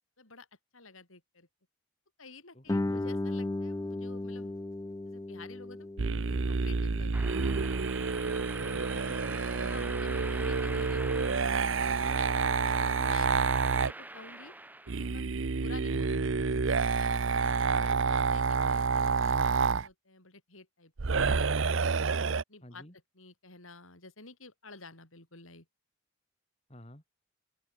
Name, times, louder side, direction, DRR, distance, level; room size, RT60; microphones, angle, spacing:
voice 1, 0.2-0.5 0.7-1.5 2.2-4.6 5.1-5.9 6.5-7.4 9.3-11.5 11.9-14.6 15.0-16.1 16.4-16.6 16.9-21.6 22.5-22.8 23.1-25.7, left 3 dB, 85° left, 7.9 m, -51 dB
voice 2, 2.5-3.2 8.6-10.0 15.9-16.2 22.6-23.0 26.7-27.0, equal, 30° left, 3.9 m, -52 dB
Guitar, 2.7-8.0, left 2 dB, 15° left, 0.3 m, -36 dB
sound 1, 6.0-13.9 14.9-19.9 21.0-22.4, right 4 dB, 70° right, 0.8 m, -28 dB
sound 2, 7.1-15.2, right 2 dB, 10° right, 1.0 m, -44 dB
open air
head